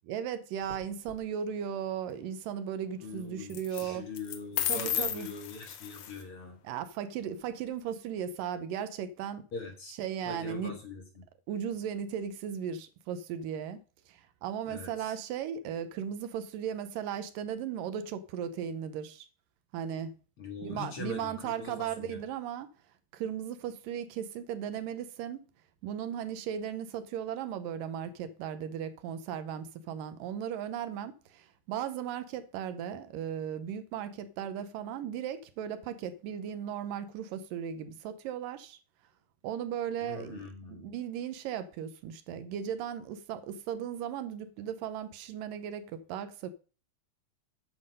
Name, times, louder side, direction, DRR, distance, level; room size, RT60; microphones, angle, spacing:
voice 1, 0.1-4.1 4.7-5.3 6.6-9.5 9.9-10.8 11.5-13.8 14.1-19.3 19.7-20.1 20.6-22.7 23.1-25.5 25.8-38.8 39.4-46.5, right 8 dB, 80° right, 2.4 m, -36 dB
sound 1, 0.6-1.2 3.5-3.8 4.2-6.2, left 10 dB, 65° left, 1.6 m, -34 dB
voice 2, 3.0-6.6 9.5-9.9 10.3-11.2 14.7-15.1 20.4-22.2 40.0-40.9, left 4 dB, 45° left, 2.2 m, -43 dB
9.8 x 7.0 x 5.2 m
omnidirectional pair, 4.0 m